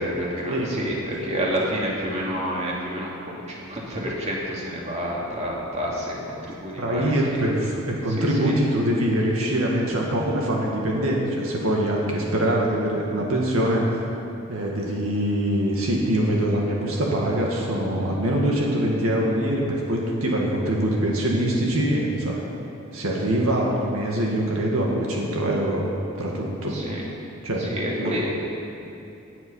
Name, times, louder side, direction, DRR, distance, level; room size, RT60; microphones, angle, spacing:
voice 1, 0.0-7.4 8.1-8.5 26.7-27.1 27.6-28.3, equal, 30° right, -4 dB, 2.6 m, -29 dB
voice 2, 6.8-13.8 14.5-22.4 22.9-25.8 26.2-26.8 27.4-28.1, right 1 dB, 75° right, -2 dB, 2.0 m, -24 dB
18.0 x 9.8 x 5.6 m, 2.9 s
head